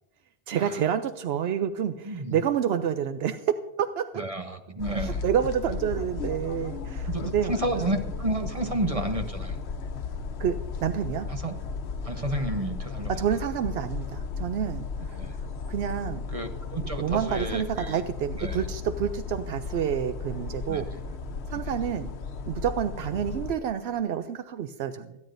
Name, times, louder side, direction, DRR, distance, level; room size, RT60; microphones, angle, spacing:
voice 1, 0.5-4.2 5.0-7.9 8.6-8.7 10.4-11.3 13.1-16.2 16.8-20.9 21.5-22.1 22.5-25.2, right 9 dB, 80° right, 10 dB, 0.8 m, -29 dB
voice 2, 2.0-2.4 4.2-5.2 7.1-9.6 11.3-11.5 12.0-13.2 15.2-15.3 16.3-18.0 18.4-18.7 20.7-20.9, right 1 dB, 35° right, 5 dB, 0.9 m, -31 dB
sound 1, 4.8-23.5, left 4 dB, 85° left, 1.1 m, -35 dB
27.0 x 9.7 x 2.6 m, 1.0 s
omnidirectional pair, 1.1 m